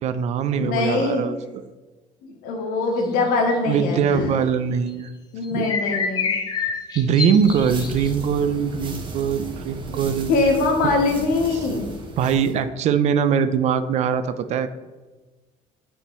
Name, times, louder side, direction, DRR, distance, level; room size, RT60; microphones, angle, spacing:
voice 1, 0.0-1.4 3.7-5.1 5.5-5.7 6.6-6.7 7.0-10.3 11.5-11.7 12.2-14.7, right 7 dB, 55° right, 11 dB, 0.5 m, -22 dB
voice 2, 0.6-1.2 2.4-4.2 5.3-6.3 10.3-11.9, left 3 dB, 90° left, 2 dB, 1.4 m, -22 dB
sound 1, 5.4-8.1, left 5 dB, 30° left, 0.9 m, -27 dB
sound 2, 7.3-12.6, right 2 dB, 35° right, 1.0 m, -35 dB
8.4 x 3.7 x 4.2 m, 1.2 s
cardioid pair, 140°, 14 cm